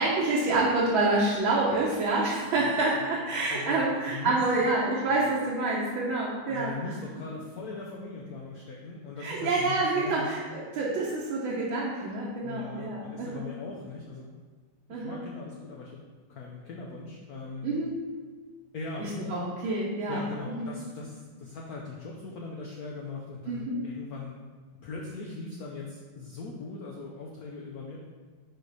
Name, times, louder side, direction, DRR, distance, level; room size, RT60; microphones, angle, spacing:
voice 1, 0.0-6.8 9.2-13.5 14.9-15.2 17.6-17.9 19.0-20.2 20.6-20.7 23.5-23.8, right 2 dB, 75° right, -6 dB, 1.7 m, -27 dB
voice 2, 2.5-3.0 3.5-4.4 5.2-5.3 6.5-10.3 12.4-14.3 14.9-15.9 16.3-17.8 18.7-19.1 20.1-24.4 24.8-28.0, left 3 dB, 65° left, -1 dB, 0.9 m, -40 dB
6.4 x 4.8 x 4.0 m, 1.5 s
omnidirectional pair, 2.3 m